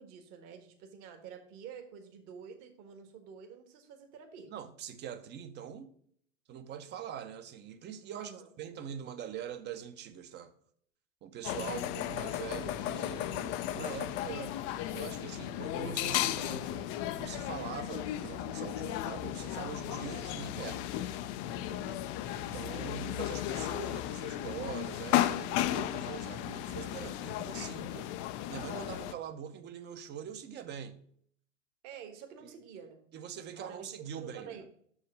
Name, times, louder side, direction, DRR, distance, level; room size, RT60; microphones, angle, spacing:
voice 1, 0.0-4.5 8.1-8.5 21.7-22.1 31.8-33.1 33.3-34.7, right 7 dB, 45° right, 1.5 m, -49 dB
voice 2, 4.5-5.9 6.5-8.3 8.6-10.5 11.2-14.6 14.9-16.9 17.2-20.9 22.3-28.1 28.5-31.0 32.4-32.5 33.1-34.6, right 8 dB, 30° right, 0.8 m, -43 dB
sound 1, 11.4-29.1, left 13 dB, 35° left, 0.4 m, -35 dB
6.5 x 4.8 x 6.5 m
hypercardioid pair, 100°, 38 cm